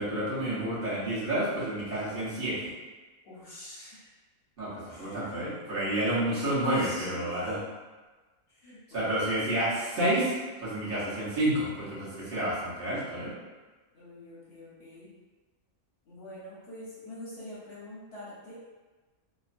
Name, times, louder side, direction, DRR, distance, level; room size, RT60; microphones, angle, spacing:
voice 1, 0.0-2.6 4.6-7.5 8.9-10.3 10.6-13.3, right 1 dB, 45° right, -10 dB, 1.1 m, -29 dB
voice 2, 3.2-4.1 4.9-5.4 6.6-7.6 8.5-9.3 13.9-15.1 16.1-18.5, equal, 55° left, -8 dB, 0.7 m, -45 dB
3.0 x 2.1 x 2.5 m, 1.3 s
omnidirectional pair, 1.5 m